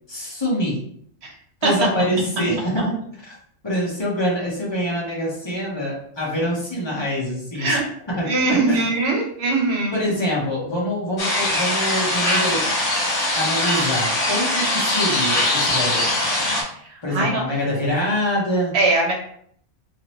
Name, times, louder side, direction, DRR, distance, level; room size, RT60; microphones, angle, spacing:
voice 1, 0.1-0.8 1.6-2.9 3.6-7.8 8.2-8.3 8.7-8.8 9.9-12.7 13.3-16.1 17.0-18.7, equal, 20° left, -5 dB, 1.2 m, -25 dB
voice 2, 8.2-10.1 16.7-17.4 18.7-19.1, right 3 dB, 60° right, 0 dB, 1.1 m, -21 dB
sound 1, 11.2-16.6, left 1 dB, 50° left, 1.3 m, -21 dB
3.7 x 2.9 x 3.1 m, 0.65 s
omnidirectional pair, 1.3 m